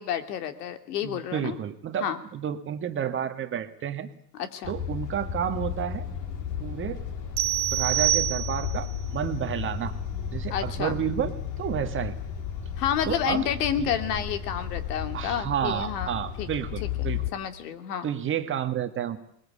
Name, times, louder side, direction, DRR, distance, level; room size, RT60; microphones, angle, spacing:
voice 1, 0.0-1.6 2.0-2.2 4.4-4.7 10.5-11.0 12.8-16.5 17.0-18.1, left 9 dB, 70° left, 8 dB, 2.7 m, -30 dB
voice 2, 1.0-4.1 4.7-6.0 6.6-7.0 7.7-9.9 10.3-12.1 13.1-13.5 13.8-13.9 15.1-17.2 18.0-19.2, right 9 dB, 25° right, 8 dB, 1.7 m, -30 dB
sound 1, 4.6-17.3, left 8 dB, 35° left, 3.3 m, -33 dB
sound 2, 7.4-8.9, right 14 dB, 85° right, 1.2 m, -26 dB
22.5 x 21.0 x 8.5 m, 0.69 s
supercardioid pair, 130°, 49 cm